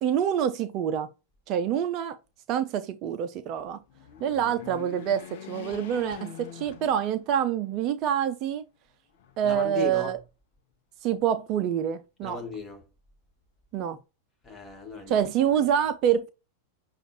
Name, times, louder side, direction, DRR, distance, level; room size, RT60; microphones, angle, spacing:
voice 1, 0.0-1.1 1.5-2.2 2.5-3.8 4.2-5.2 5.5-8.6 9.4-10.2 11.0-12.4 13.7-14.0 15.1-16.3, right 9 dB, 40° right, 0.4 m, -26 dB
sound 1, 3.9-7.5 8.0-8.1 9.1-9.9, left 9 dB, 50° left, 0.7 m, -44 dB
voice 2, 9.4-10.2 12.2-12.8 14.4-15.2 15.6-15.8, left 4 dB, 15° left, 1.5 m, -36 dB
6.4 x 2.4 x 3.0 m
figure-of-eight pair, 90°, 0 cm